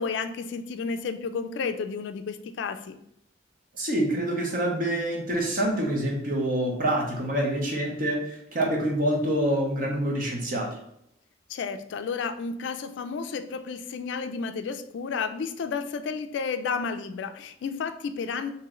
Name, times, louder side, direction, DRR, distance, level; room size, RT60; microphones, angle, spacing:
voice 1, 0.0-3.0 11.5-18.5, left 5 dB, 65° left, 9 dB, 0.3 m, -32 dB
voice 2, 3.8-10.7, right 1 dB, 45° right, 0 dB, 0.8 m, -26 dB
3.0 x 2.8 x 3.7 m, 0.74 s
head